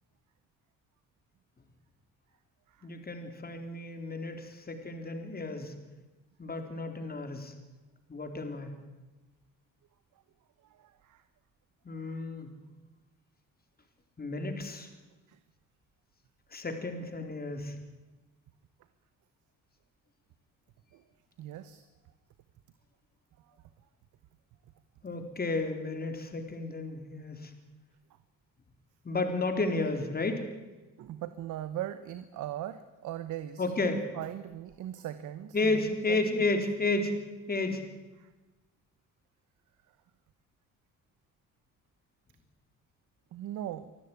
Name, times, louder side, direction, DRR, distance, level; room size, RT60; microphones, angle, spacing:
voice 1, 2.8-5.7 6.4-7.5 8.1-8.7 11.8-12.5 14.2-14.9 16.5-17.8 25.0-27.5 29.0-30.5 33.6-34.0 35.5-37.1 37.5-37.8, left 2 dB, 30° left, 6 dB, 4.0 m, -32 dB
voice 2, 10.7-11.2 12.0-12.2 15.3-15.4 20.9-21.0 21.4-21.8 31.0-36.2 38.2-38.3 43.3-43.9, right 12 dB, 85° right, 12 dB, 1.1 m, -40 dB
25.0 x 14.0 x 9.7 m, 1.1 s
cardioid pair, 90°, 30 cm